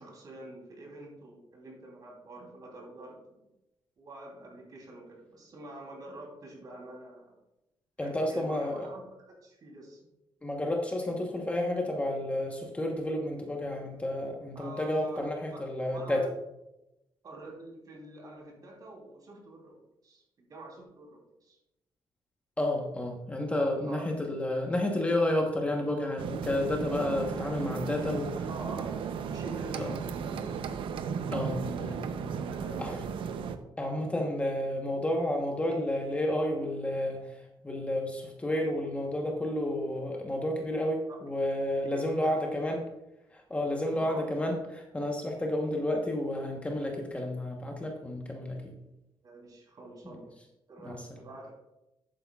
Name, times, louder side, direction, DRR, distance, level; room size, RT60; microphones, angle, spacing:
voice 1, 0.0-3.5 4.0-7.4 8.0-9.0 9.4-10.0 14.5-15.3 15.9-16.3 17.2-21.6 23.9-24.0 28.5-29.0 29.3-30.4 31.3-33.3 41.1-41.2 41.8-42.3 43.9-44.2 49.2-50.3 50.7-51.5, right 2 dB, 45° right, -1 dB, 3.1 m, -47 dB
voice 2, 8.0-8.9 10.4-16.2 22.6-28.3 29.8-29.9 31.3-32.0 32.8-33.0 33.8-37.4 37.6-42.8 43.3-48.7 50.8-51.0, left 1 dB, 15° left, 1 dB, 1.0 m, -31 dB
sound 1, 26.2-33.6, right 6 dB, 75° right, 0.6 m, -35 dB
11.0 x 8.7 x 2.3 m, 0.91 s
cardioid pair, 140°, 9 cm